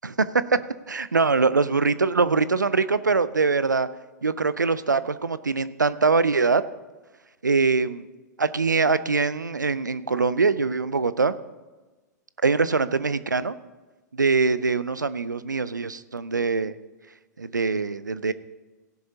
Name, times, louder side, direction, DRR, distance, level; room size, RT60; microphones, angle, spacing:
voice 1, 0.9-3.9 4.2-6.6 7.4-8.1 8.4-11.3 12.4-13.6 14.1-16.7 17.4-18.3, right 4 dB, 90° right, 15 dB, 0.5 m, -23 dB
16.5 x 10.5 x 2.8 m, 1.2 s
figure-of-eight pair, 105°, 10 cm